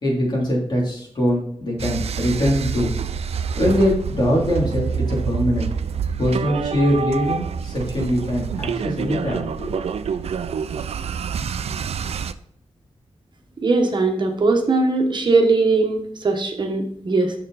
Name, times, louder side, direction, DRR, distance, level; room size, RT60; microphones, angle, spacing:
voice 1, 0.0-2.9 3.6-5.7 6.2-9.8, equal, 45° left, -3 dB, 3.2 m, -22 dB
sound 1, 1.8-12.3, right 6 dB, 70° right, 0.4 m, -27 dB
voice 2, 13.6-17.3, right 3 dB, 45° right, 4 dB, 1.2 m, -20 dB
6.6 x 6.6 x 4.0 m, 0.67 s
wide cardioid pair, 130°, 11 cm